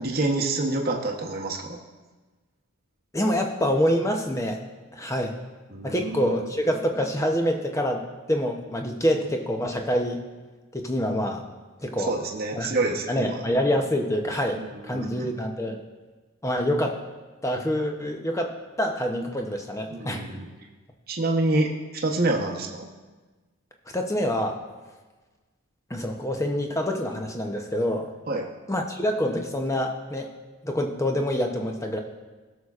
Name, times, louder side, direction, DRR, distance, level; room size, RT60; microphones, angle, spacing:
voice 1, 0.0-1.8 5.7-6.5 12.1-13.4 14.6-15.3 19.9-20.5 21.1-21.7 22.0-22.9 28.3-28.5, right 2 dB, 40° right, 0 dB, 0.8 m, -27 dB
voice 2, 3.1-4.6 4.9-5.4 5.8-10.2 10.7-11.4 11.8-12.2 12.5-15.8 16.4-17.0 17.4-20.2 23.9-24.6 25.9-28.1 28.7-30.3 30.6-32.0, equal, 15° left, 3 dB, 0.6 m, -26 dB
17.0 x 6.4 x 2.4 m, 1.3 s
head